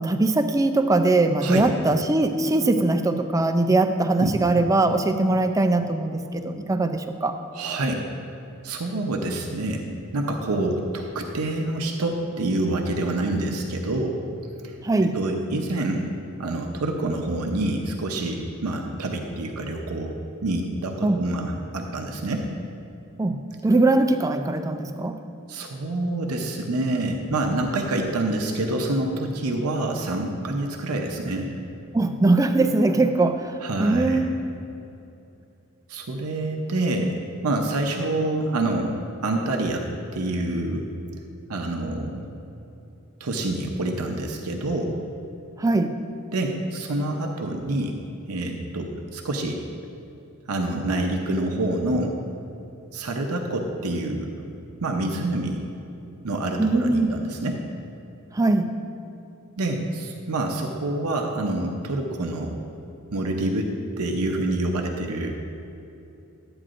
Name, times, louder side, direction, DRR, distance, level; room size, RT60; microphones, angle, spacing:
voice 1, 0.0-7.4 14.8-15.2 21.0-21.2 23.2-25.2 31.9-33.5 33.8-34.4 45.6-45.9 56.6-57.2 58.3-58.7, right 2 dB, 15° right, 8 dB, 0.3 m, -21 dB
voice 2, 7.5-8.0 8.6-9.8 10.1-14.2 15.1-16.1 16.4-20.1 20.4-22.5 25.5-31.5 33.6-34.2 35.9-39.9 40.1-40.9 41.5-42.3 43.2-45.0 46.3-48.0 48.3-49.6 50.5-52.1 52.9-54.4 54.8-55.6 56.2-57.6 59.6-62.6 63.1-65.3, right 2 dB, 85° right, 2 dB, 0.7 m, -27 dB
12.0 x 8.7 x 2.5 m, 2.8 s
head